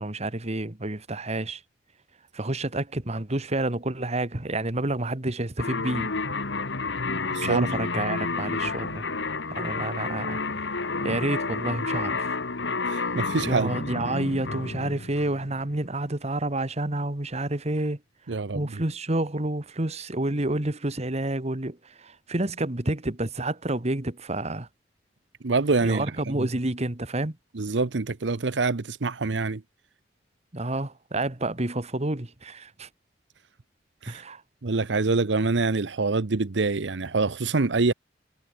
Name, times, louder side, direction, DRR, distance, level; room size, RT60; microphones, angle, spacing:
voice 1, 0.0-1.6 2.3-6.1 7.2-9.1 9.5-12.4 13.0-13.2 13.5-18.0 18.3-24.7 25.8-27.4 30.5-32.9 34.1-34.4, right 2 dB, 35° right, 1.8 m, -29 dB
sound 1, 5.6-15.7, left 3 dB, 80° left, 1.7 m, -30 dB
voice 2, 7.3-7.7 12.9-13.7 18.3-18.6 25.4-26.0 26.4-26.5 27.6-29.6 34.0-34.2 34.6-37.9, right 3 dB, 80° right, 0.9 m, -25 dB
head